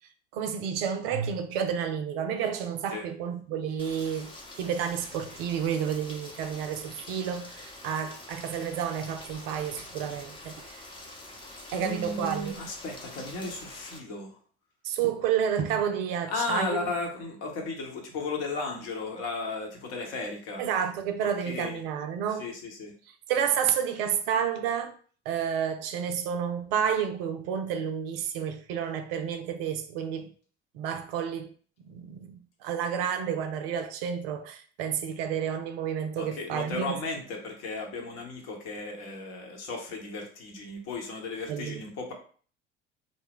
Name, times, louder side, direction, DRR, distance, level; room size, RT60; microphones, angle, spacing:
voice 1, 0.3-10.7 11.7-12.6 14.8-16.9 20.6-22.5 23.3-24.9 25.3-30.3 30.7-31.5 31.9-36.9 41.5-41.8, right 8 dB, 55° right, 0.5 m, -30 dB
Rain, 3.8-14.0, left 2 dB, 15° left, 0.7 m, -46 dB
voice 2, 11.7-14.4 16.3-20.6 21.2-21.8 22.4-22.9 36.2-42.1, left 3 dB, 45° left, 0.9 m, -35 dB
2.6 x 2.1 x 3.5 m
figure-of-eight pair, 60°, 34 cm